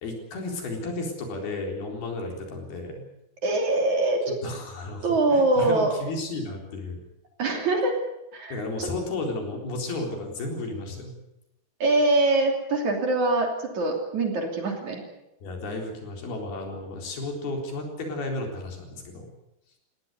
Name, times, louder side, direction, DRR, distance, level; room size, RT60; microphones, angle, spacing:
voice 1, 0.0-3.1 4.4-7.0 8.5-11.1 15.4-19.3, left 2 dB, 65° left, 2 dB, 5.9 m, -33 dB
voice 2, 3.4-4.4 5.0-5.9 7.4-8.0 8.3-8.9 11.8-15.0, right 2 dB, 45° right, 3 dB, 4.1 m, -23 dB
20.0 x 17.5 x 9.4 m, 0.88 s
omnidirectional pair, 4.8 m